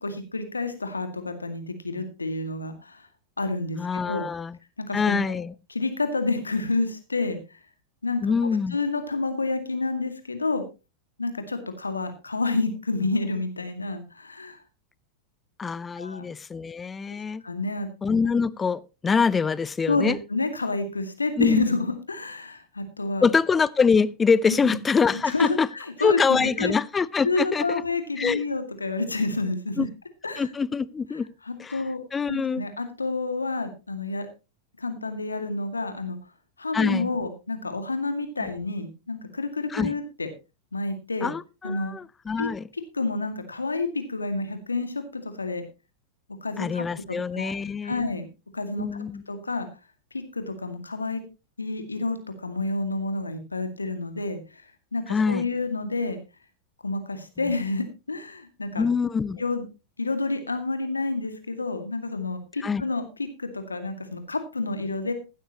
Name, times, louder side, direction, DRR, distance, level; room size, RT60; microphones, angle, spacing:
voice 1, 0.0-3.1 3.4-3.8 4.1-4.3 4.8-5.4 5.7-7.4 8.0-8.3 8.7-10.6 11.2-14.6 16.0-16.2 17.4-17.9 19.9-23.3 24.6-24.8 25.3-26.7 27.2-29.9 30.2-30.5 31.5-32.0 32.3-34.3 34.8-36.2 36.6-40.3 40.7-41.3 41.6-42.0 42.4-45.6 46.4-47.6 47.8-48.3 48.5-49.7 50.1-51.2 51.6-54.6 54.9-56.2 56.8-58.9 59.4-59.6 60.0-65.1, left 3 dB, 85° left, 2.1 m, -29 dB
voice 2, 3.8-4.6 4.9-5.5 8.2-8.8 15.6-17.4 18.0-20.2 21.4-21.7 23.2-25.7 26.0-27.8 28.2-28.4 29.8-29.9 30.4-31.3 31.6-31.8 32.1-32.6 36.7-37.1 38.4-38.5 39.7-39.9 41.2-42.6 46.6-48.1 48.8-49.2 55.1-55.5 57.4-57.5 58.8-59.4 62.6-62.8, left 5 dB, 20° left, 0.6 m, -24 dB
15.5 x 12.0 x 3.0 m
figure-of-eight pair, 90°, 0 cm